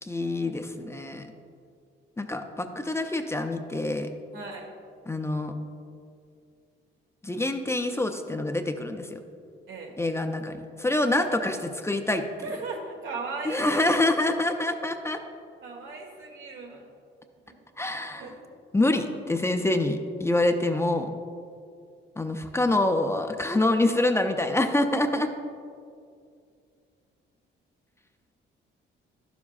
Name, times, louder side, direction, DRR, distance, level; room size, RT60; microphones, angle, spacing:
voice 1, 0.0-1.3 2.2-4.1 5.1-5.5 7.2-9.2 10.0-12.2 13.4-15.2 17.8-18.3 18.7-21.1 22.2-25.3, left 2 dB, 15° left, 6 dB, 0.5 m, -26 dB
voice 2, 4.3-4.7 9.7-9.9 11.1-11.3 12.4-14.0 15.6-16.9 17.5-17.6 17.9-18.3, right 3 dB, 80° right, 1 dB, 1.4 m, -38 dB
11.5 x 7.1 x 2.4 m, 2.3 s
cardioid pair, 90°, 20 cm